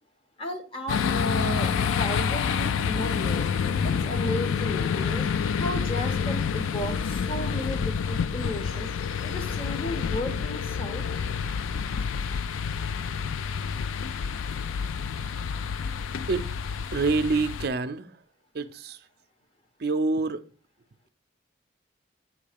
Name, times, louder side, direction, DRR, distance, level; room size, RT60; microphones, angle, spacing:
voice 1, 0.4-3.4 3.8-5.3 5.6-8.9 9.2-11.1, equal, 30° left, 0.9 m, -34 dB
sound 1, 0.9-17.7, left 6 dB, 90° left, 0.4 m, -28 dB
voice 2, 16.9-18.1 18.5-19.0 19.8-20.4, right 3 dB, 55° right, 0.5 m, -26 dB
7.7 x 3.3 x 5.0 m
head